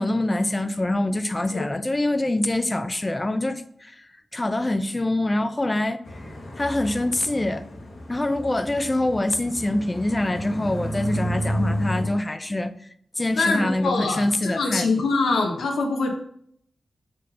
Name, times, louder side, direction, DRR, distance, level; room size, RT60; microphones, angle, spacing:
voice 1, 0.0-7.6 8.1-12.9 13.2-15.0, left 1 dB, 25° left, 0.5 m, -25 dB
sound 1, 6.0-12.1, equal, 60° left, 1.4 m, -31 dB
voice 2, 13.3-16.2, left 3 dB, 85° left, 1.1 m, -24 dB
5.3 x 4.0 x 5.5 m
cardioid pair, 60°, 0 cm